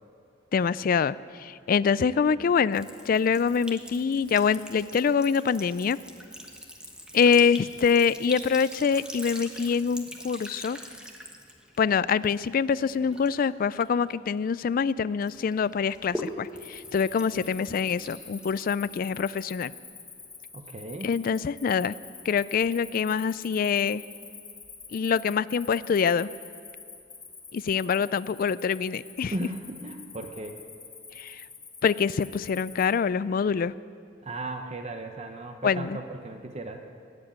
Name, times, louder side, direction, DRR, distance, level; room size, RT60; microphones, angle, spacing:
voice 1, 0.5-6.0 7.1-10.8 11.8-19.7 21.0-21.9 22.3-24.0 24.9-26.3 27.5-29.3 31.2-31.4 31.8-33.7 35.6-36.0, left 6 dB, 50° left, 18 dB, 0.3 m, -25 dB
Sink (filling or washing) / Trickle dribble, 2.7-14.8 15.2-19.1, equal, 5° right, 1.2 m, -43 dB
Cricket, 16.6-32.9, left 5 dB, 15° left, 2.4 m, -46 dB
voice 2, 20.5-21.1 29.3-30.6 34.2-36.8, right 2 dB, 35° right, 5 dB, 0.8 m, -36 dB
20.0 x 8.0 x 8.7 m, 2.3 s
head